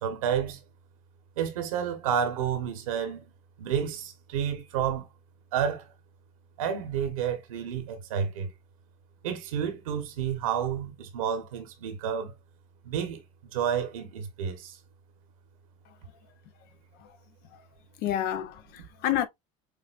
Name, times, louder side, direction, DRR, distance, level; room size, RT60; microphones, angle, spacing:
voice 1, 0.0-0.6 1.4-3.2 3.6-5.1 5.5-5.9 6.6-8.5 9.2-12.3 12.8-13.2 13.5-14.8, right 8 dB, 90° right, 1.4 m, -30 dB
voice 2, 18.0-19.3, left 11 dB, 65° left, 0.9 m, -30 dB
6.7 x 2.7 x 2.6 m
hypercardioid pair, 80°, 17 cm